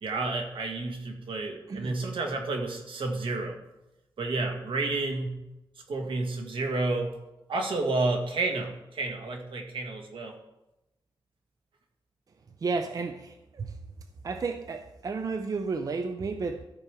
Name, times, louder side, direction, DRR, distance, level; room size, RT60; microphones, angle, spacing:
voice 1, 0.0-3.6 4.2-5.4 5.9-7.2 7.5-10.4, right 3 dB, 75° right, 3 dB, 1.4 m, -30 dB
voice 2, 1.7-2.1 12.6-13.8 14.2-16.7, right 4 dB, 45° right, 8 dB, 0.5 m, -32 dB
13.0 x 4.9 x 4.8 m, 0.94 s
wide cardioid pair, 140°, 9 cm